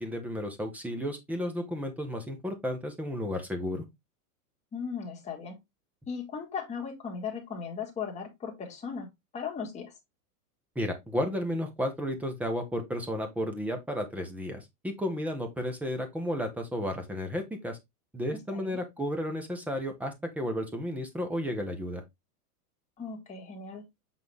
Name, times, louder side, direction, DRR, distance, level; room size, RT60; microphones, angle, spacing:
voice 1, 0.0-3.8 10.8-17.8 18.1-22.0, equal, 5° right, 0.8 m, -33 dB
voice 2, 4.7-5.6 6.1-9.9 18.3-18.8 23.0-23.9, left 6 dB, 15° left, 1.8 m, -37 dB
7.8 x 3.9 x 3.4 m
supercardioid pair, 160°, 46 cm